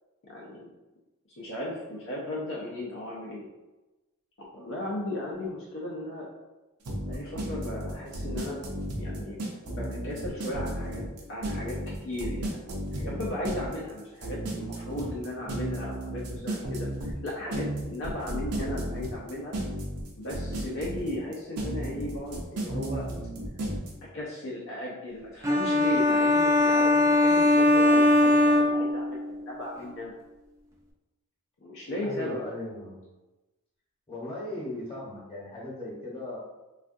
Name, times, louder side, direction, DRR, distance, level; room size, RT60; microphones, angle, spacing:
voice 1, 0.3-0.7 1.4-3.5 4.5-6.3 7.1-8.6 9.0-9.4 9.7-11.0 11.3-19.6 20.2-23.1 24.1-30.1 31.6-32.4, left 1 dB, 60° left, -5 dB, 0.6 m, -36 dB
sound 1, 6.8-23.9, right 1 dB, 85° right, 0.6 m, -34 dB
sound 2, 25.4-29.3, left 1 dB, 15° right, 0.4 m, -21 dB
voice 2, 32.0-33.0 34.1-36.4, left 1 dB, 25° left, -6 dB, 1.0 m, -37 dB
3.3 x 2.4 x 2.6 m, 1.1 s
head